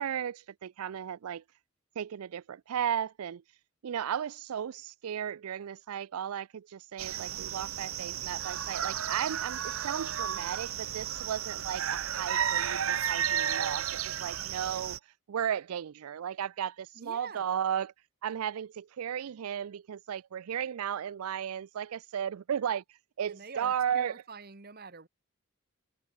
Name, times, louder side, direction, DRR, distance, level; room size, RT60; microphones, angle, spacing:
voice 1, 0.0-1.4 2.0-3.4 3.8-15.0 15.3-17.9 18.2-24.2, right 9 dB, 90° right, 0.4 m, -35 dB
sound 1, 7.0-15.0, right 9 dB, 75° right, 0.9 m, -33 dB
voice 2, 16.9-17.5 23.3-25.1, right 4 dB, 45° right, 1.4 m, -46 dB
head